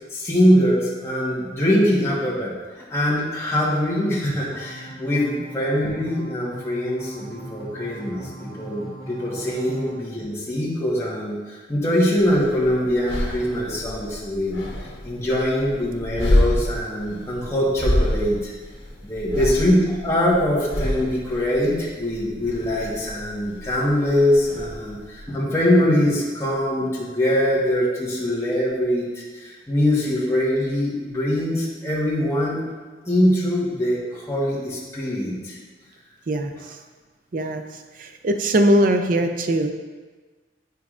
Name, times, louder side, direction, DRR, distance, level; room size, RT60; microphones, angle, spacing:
voice 1, 0.1-2.5 2.9-14.6 15.0-18.5 19.0-32.6 33.0-35.6, left 1 dB, 15° left, -7 dB, 1.4 m, -22 dB
sound 1, 4.5-10.0, right 1 dB, 25° right, 1.6 m, -39 dB
sound 2, 12.2-25.2, left 1 dB, 80° left, 1.3 m, -28 dB
voice 2, 38.0-39.7, right 1 dB, 50° right, 6 dB, 0.5 m, -20 dB
9.3 x 4.7 x 2.5 m, 1.4 s
head